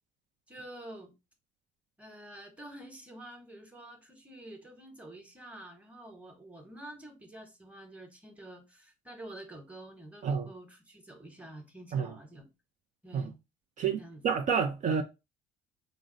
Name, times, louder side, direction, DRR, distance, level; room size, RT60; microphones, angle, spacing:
voice 1, 0.5-1.1 2.0-12.5 13.0-13.4 14.0-14.2, right 1 dB, 10° right, 1.1 m, -48 dB
voice 2, 13.8-15.0, right 6 dB, 50° right, 0.5 m, -29 dB
3.8 x 2.0 x 3.8 m
cardioid pair, 110°, 17 cm